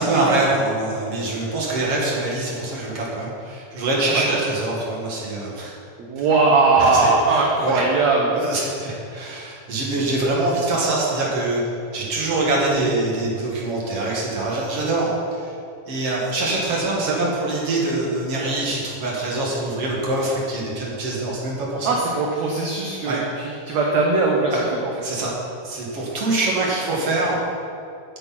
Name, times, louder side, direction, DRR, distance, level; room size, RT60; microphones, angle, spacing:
voice 1, 0.0-5.7 6.2-6.3 6.7-7.8 8.3-11.6 11.9-15.1 15.4-15.5 15.9-22.0 23.0-23.2 24.5-24.6 25.0-25.4 25.6-27.4, right 2 dB, 50° right, -4 dB, 2.7 m, -24 dB
voice 2, 6.0-8.4 17.1-17.3 21.8-24.6, right 3 dB, 65° right, -1 dB, 2.0 m, -20 dB
13.5 x 8.8 x 4.3 m, 2.5 s
omnidirectional pair, 3.9 m